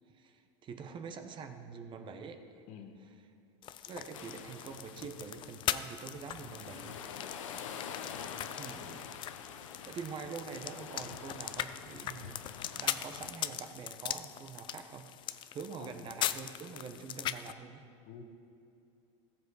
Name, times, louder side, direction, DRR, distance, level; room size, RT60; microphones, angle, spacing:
voice 1, 0.1-2.6 3.0-3.1 3.9-7.0 8.6-9.2 9.9-12.5 12.7-17.8, right 5 dB, 30° right, 7 dB, 0.9 m, -45 dB
voice 2, 2.7-3.0 8.0-8.6 15.7-16.1 18.1-18.2, left 8 dB, 55° left, 6 dB, 1.2 m, -51 dB
sound 1, 3.6-17.5, left 11 dB, 30° left, 0.4 m, -40 dB
sound 2, 4.1-13.3, left 7 dB, 85° left, 0.8 m, -46 dB
14.5 x 7.2 x 4.8 m, 2.6 s
supercardioid pair, 125°, 16 cm